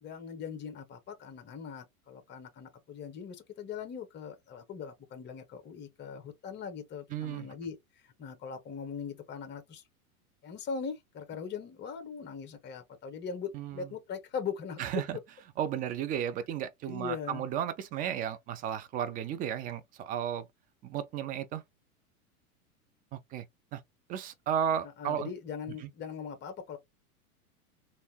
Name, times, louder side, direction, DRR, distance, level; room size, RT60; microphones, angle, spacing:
voice 1, 0.0-7.8 8.0-9.8 10.4-14.8 16.9-17.4 25.0-26.8, left 6 dB, 25° left, 1.0 m, -40 dB
voice 2, 7.1-7.5 13.5-13.9 14.8-15.2 15.6-20.5 20.8-21.6 23.1-23.5 23.7-23.8 24.1-25.3, right 9 dB, 20° right, 0.4 m, -34 dB
3.4 x 2.6 x 2.8 m
hypercardioid pair, 95°, 43 cm